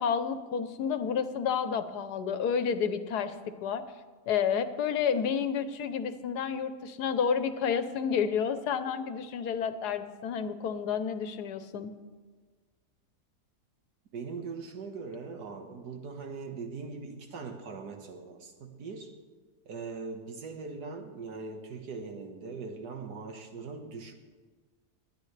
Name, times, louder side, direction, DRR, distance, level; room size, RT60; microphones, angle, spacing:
voice 1, 0.0-3.3 3.6-3.8 4.3-11.9, left 7 dB, 80° left, 10 dB, 1.4 m, -30 dB
voice 2, 14.1-19.2 19.7-24.1, right 4 dB, 85° right, 4 dB, 1.9 m, -41 dB
25.5 x 10.5 x 3.3 m, 1.4 s
omnidirectional pair, 1.7 m